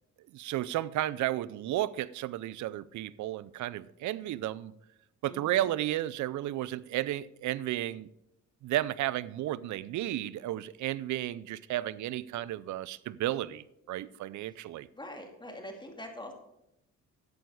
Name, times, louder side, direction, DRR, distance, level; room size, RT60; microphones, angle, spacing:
voice 1, 0.3-4.7 5.2-8.1 8.6-14.9, right 14 dB, 75° right, 0.6 m, -33 dB
voice 2, 5.2-5.7 14.5-14.6 14.9-16.3, left 1 dB, 15° left, 2.4 m, -44 dB
11.5 x 8.1 x 4.8 m
cardioid pair, 90°, 30 cm